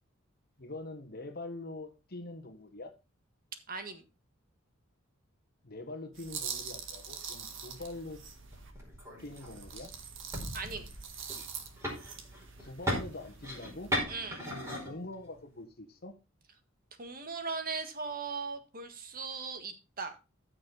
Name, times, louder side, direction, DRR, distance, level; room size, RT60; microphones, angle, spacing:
voice 1, 0.6-2.9 5.6-8.2 9.2-9.9 12.6-13.9 14.4-16.1, left 2 dB, 50° left, 1.4 m, -44 dB
voice 2, 3.7-4.0 10.5-10.9 14.1-14.4 17.0-20.1, right 4 dB, 45° right, 1.7 m, -38 dB
sound 1, 6.1-8.7 9.2-14.0, right 7 dB, 60° right, 1.9 m, -44 dB
sound 2, 7.7-15.6, equal, 15° right, 4.8 m, -39 dB
14.0 x 6.4 x 4.0 m
head